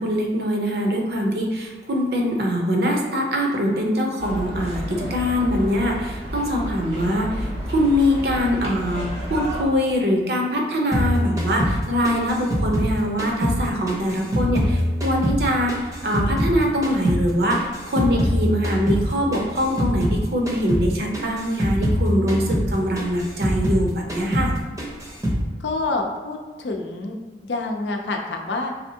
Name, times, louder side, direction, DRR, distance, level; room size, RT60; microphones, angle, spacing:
voice 1, 0.0-24.5, equal, 60° right, 0 dB, 0.7 m, -23 dB
sound 1, 4.2-9.6, equal, 80° right, 1.2 m, -31 dB
voice 2, 7.0-7.4 25.6-27.2 27.4-28.7, left 2 dB, 85° left, 2 dB, 0.5 m, -27 dB
sound 2, 10.9-13.6 13.9-16.6 16.8-20.2 20.5-20.9 21.1-23.8 24.1-24.5 24.8-25.4, equal, 20° right, 0.6 m, -23 dB
4.2 x 3.4 x 2.7 m, 1.3 s
head